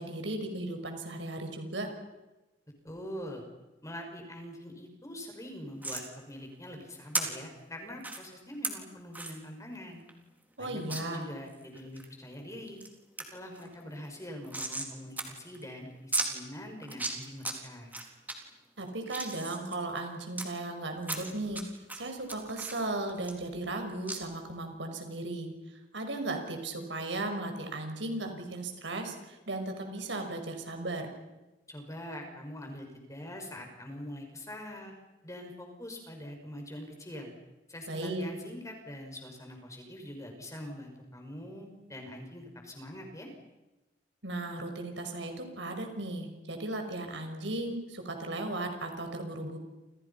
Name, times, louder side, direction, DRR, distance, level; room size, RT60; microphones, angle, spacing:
voice 1, 0.0-1.9 10.6-11.2 18.8-21.6 21.9-25.5 25.9-31.1 37.9-38.2 44.2-49.6, right 2 dB, 80° right, 5 dB, 5.7 m, -36 dB
voice 2, 2.8-3.4 3.8-10.0 10.6-12.8 13.3-17.9 31.7-34.9 35.2-37.3 37.7-43.3, left 1 dB, 20° left, 3 dB, 6.1 m, -44 dB
sound 1, 5.8-6.1 7.1-7.2 8.0-8.2 8.6-8.7 9.1-9.4 9.7-9.8 10.1-10.2 10.9-11.0 11.5-12.1 12.5-12.9 13.2-13.3 13.5-14.9 15.2-15.3 15.5-15.6 16.1-16.3 16.8-17.5 17.9-18.3 18.8-20.4 21.0-21.6 21.9-23.8 24.1-24.2, right 2 dB, 10° right, 4.0 m, -35 dB
30.0 x 28.5 x 5.8 m, 1.0 s
head